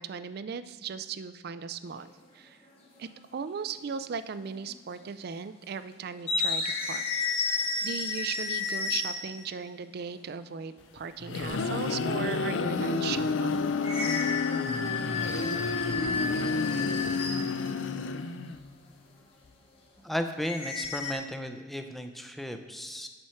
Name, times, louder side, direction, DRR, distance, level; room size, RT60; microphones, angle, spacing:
voice 1, 0.0-2.1 2.3-2.6 3.0-7.0 7.8-13.6, right 6 dB, 55° right, 12 dB, 0.4 m, -37 dB
sound 1, 1.9-2.1 3.3-3.4 4.4-4.8 5.1-5.2 6.2-9.5 13.8-17.6 20.4-21.1, left 4 dB, 30° left, 1.3 m, -32 dB
sound 2, 11.0-18.7, left 4 dB, 70° left, 0.5 m, -30 dB
voice 2, 20.0-23.1, equal, ahead, 6 dB, 0.5 m, -35 dB
7.6 x 7.0 x 4.4 m, 1.5 s
head